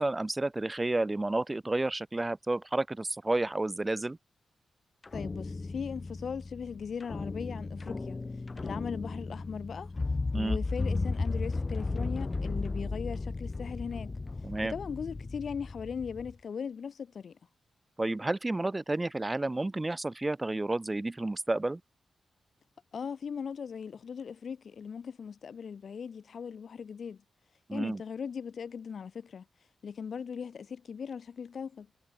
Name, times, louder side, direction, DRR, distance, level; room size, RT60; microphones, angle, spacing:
voice 1, 0.0-4.2 10.3-10.6 14.4-14.7 18.0-21.8 27.7-28.0, right 2 dB, 15° right, 1.1 m, -31 dB
sound 1, 5.0-16.3, left 3 dB, 25° left, 1.2 m, -35 dB
voice 2, 5.1-8.2 8.6-9.9 10.3-14.1 14.6-17.4 22.9-27.2 27.7-29.4 29.8-31.9, left 6 dB, 55° left, 2.2 m, -39 dB
wide cardioid pair, 145°, 0 cm